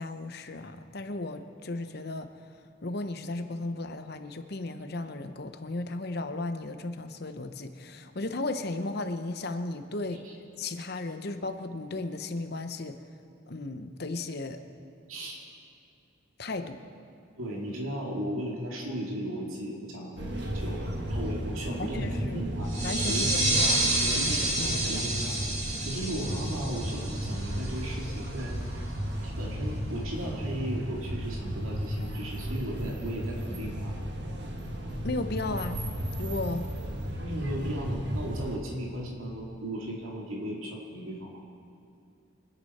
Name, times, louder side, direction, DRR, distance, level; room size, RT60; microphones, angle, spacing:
voice 1, 0.0-2.3 2.8-10.2 10.6-12.9 13.5-14.6 16.4-16.8 21.8-22.4 22.8-23.8 24.2-25.0 35.0-35.8 36.2-36.7, left 2 dB, 50° left, 8 dB, 0.8 m, -35 dB
voice 2, 17.4-20.8 21.1-22.8 23.1-23.5 24.0-25.4 25.8-28.6 29.2-34.0 37.2-41.4, equal, 85° right, -2 dB, 2.2 m, -36 dB
sound 1, 20.2-38.6, equal, 55° right, 1.5 m, -34 dB
sound 2, 22.7-28.0, right 2 dB, 35° right, 2.2 m, -29 dB
24.5 x 10.0 x 4.3 m, 2.6 s
head